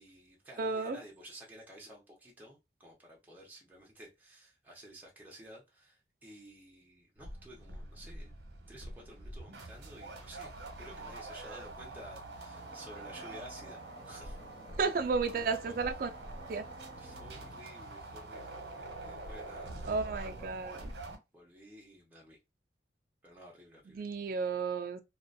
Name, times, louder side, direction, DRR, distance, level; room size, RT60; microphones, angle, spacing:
voice 1, 0.0-8.3 8.7-14.4 15.4-15.8 16.7-20.5 20.8-20.9 21.3-22.4 23.2-24.0, right 1 dB, 10° right, 0.7 m, -53 dB
voice 2, 0.6-1.0 14.8-16.1 16.5-16.6 19.9-20.9 23.9-25.0, right 4 dB, 50° right, 0.3 m, -33 dB
sound 1, 7.2-21.2, right 2 dB, 80° right, 0.8 m, -45 dB
sound 2, 12.4-17.7, left 1 dB, 30° left, 0.5 m, -55 dB
2.4 x 2.2 x 2.4 m
head